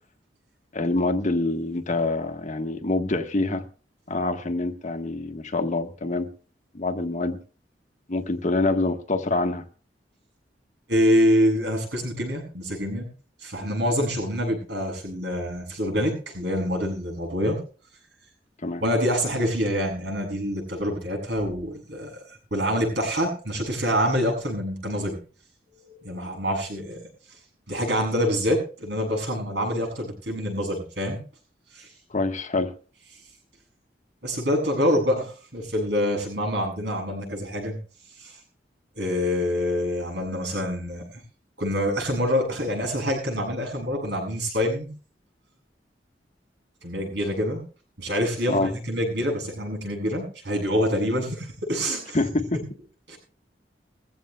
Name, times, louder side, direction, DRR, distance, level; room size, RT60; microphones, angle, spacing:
voice 1, 0.7-3.6 4.1-6.3 6.7-7.4 8.1-9.6 18.6-18.8 32.1-32.7 48.5-48.7 52.1-52.6, left 2 dB, 45° left, 1.3 m, -26 dB
voice 2, 10.9-13.1 13.4-17.6 18.8-25.2 26.0-27.0 27.7-31.2 31.7-31.9 34.2-37.8 38.2-38.4 39.0-41.1 41.6-44.9 46.8-47.6 48.0-52.2 52.5-52.6 53.1-53.2, equal, 75° right, 8.0 m, -26 dB
21.5 x 15.5 x 2.2 m
head